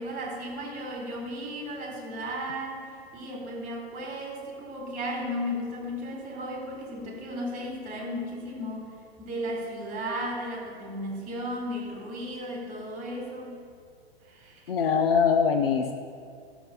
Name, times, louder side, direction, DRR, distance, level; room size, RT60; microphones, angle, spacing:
voice 1, 0.0-8.9 9.2-13.6 14.2-14.6, equal, 25° right, 0 dB, 3.6 m, -35 dB
voice 2, 14.7-15.9, left 6 dB, 60° left, 5 dB, 0.9 m, -22 dB
14.5 x 7.4 x 5.7 m, 2.2 s
figure-of-eight pair, 110°, 32 cm